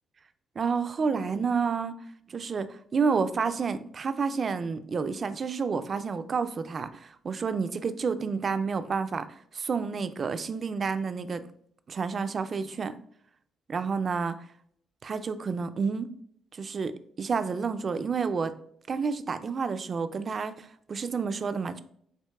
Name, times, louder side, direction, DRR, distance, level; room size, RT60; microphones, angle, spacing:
voice 1, 0.6-2.0 2.3-9.3 9.5-11.5 11.9-12.9 13.7-14.4 15.0-16.1 16.5-18.6 18.9-21.8, right 5 dB, 45° right, 11 dB, 0.4 m, -30 dB
7.4 x 2.9 x 2.3 m, 0.66 s
cardioid pair, 90°, 0 cm